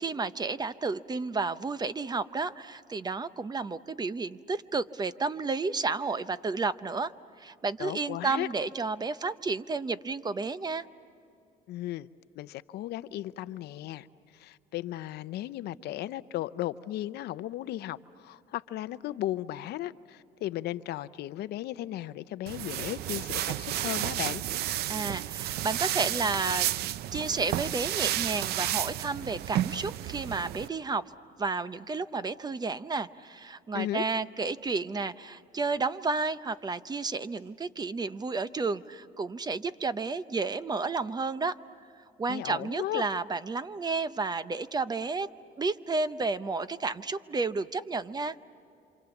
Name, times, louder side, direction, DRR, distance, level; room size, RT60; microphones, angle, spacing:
voice 1, 0.0-7.1 7.4-10.9 24.9-26.7 27.1-31.1 31.4-41.5 42.2-45.3 45.6-48.4, right 4 dB, 25° right, 14 dB, 0.7 m, -31 dB
voice 2, 7.8-8.5 11.7-12.1 12.4-14.1 14.3-24.4 33.7-34.0 42.3-43.0, left 14 dB, 75° left, 15 dB, 0.7 m, -35 dB
sound 1, 22.5-30.7, right 13 dB, 70° right, 0.5 m, -32 dB
27.5 x 27.0 x 7.1 m, 2.7 s
cardioid pair, 110°, 17 cm